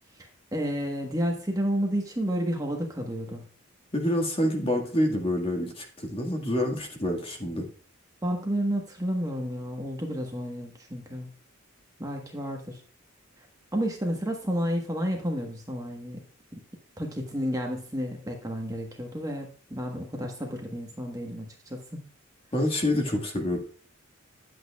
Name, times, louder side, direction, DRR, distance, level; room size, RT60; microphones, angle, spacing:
voice 1, 0.2-3.5 8.2-11.3 12.0-12.8 13.7-16.2 16.5-16.6 17.0-22.0, equal, 15° right, 1 dB, 1.3 m, -31 dB
voice 2, 3.9-7.7 22.5-23.6, left 1 dB, 25° left, 2 dB, 1.7 m, -27 dB
10.5 x 8.4 x 2.3 m, 0.43 s
head